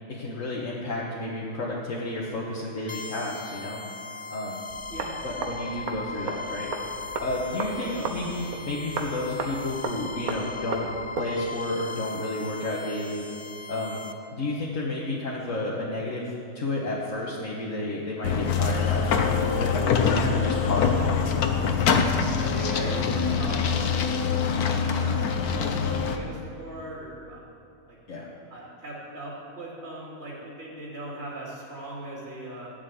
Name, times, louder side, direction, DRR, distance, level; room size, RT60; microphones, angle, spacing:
voice 1, 0.1-3.8 4.3-4.6 5.2-6.7 7.2-10.9 11.2-13.3 13.7-14.0 14.3-21.1 28.1-28.3, left 2 dB, 55° left, -4 dB, 1.8 m, -31 dB
sound 1, 2.9-14.1, left 4 dB, 25° left, 0.6 m, -39 dB
sound 2, 4.7-11.3, right 4 dB, 70° right, 1.6 m, -35 dB
sound 3, 18.2-26.2, left 6 dB, 75° left, 1.4 m, -24 dB
voice 2, 22.4-27.5 27.9-28.0 28.5-32.7, right 1 dB, 45° right, -6 dB, 3.2 m, -39 dB
14.5 x 7.5 x 9.5 m, 2.6 s
omnidirectional pair, 1.6 m